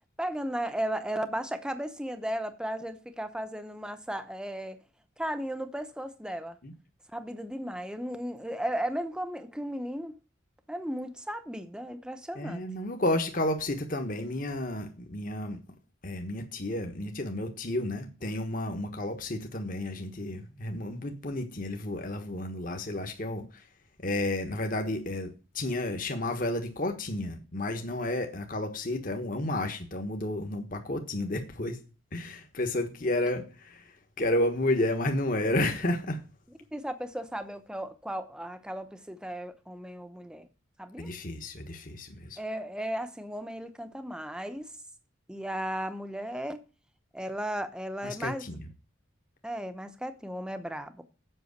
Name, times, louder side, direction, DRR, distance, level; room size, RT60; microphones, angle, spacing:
voice 1, 0.2-4.8 5.2-6.6 7.1-10.2 10.7-12.6 36.7-40.5 40.8-41.1 42.4-44.7 45.3-46.6 47.1-48.4 49.4-51.0, right 1 dB, 5° right, 0.8 m, -35 dB
voice 2, 12.3-15.6 16.0-23.7 24.0-31.8 32.1-36.2 41.0-42.4 48.0-48.7, left 1 dB, 40° left, 1.3 m, -31 dB
8.0 x 6.2 x 8.0 m
head